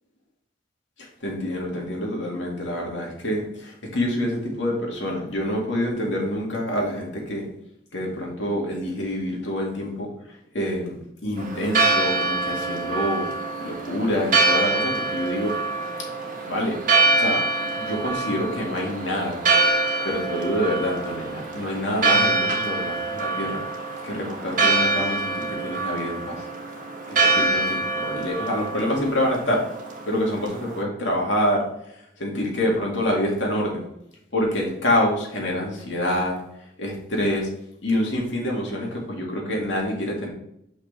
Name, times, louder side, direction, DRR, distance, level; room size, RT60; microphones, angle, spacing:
voice 1, 1.0-7.4 7.9-10.1 10.5-11.0 11.2-13.2 13.6-15.5 16.5-16.8 17.1-19.4 20.0-23.6 24.0-26.4 27.1-29.6 30.0-31.6 32.2-33.8 34.3-36.3 36.8-37.5 37.8-40.3, left 1 dB, 75° left, -1 dB, 2.1 m, -26 dB
Church bell, 11.4-30.8, right 3 dB, 40° right, 1.3 m, -25 dB
6.1 x 5.4 x 3.3 m, 0.79 s
head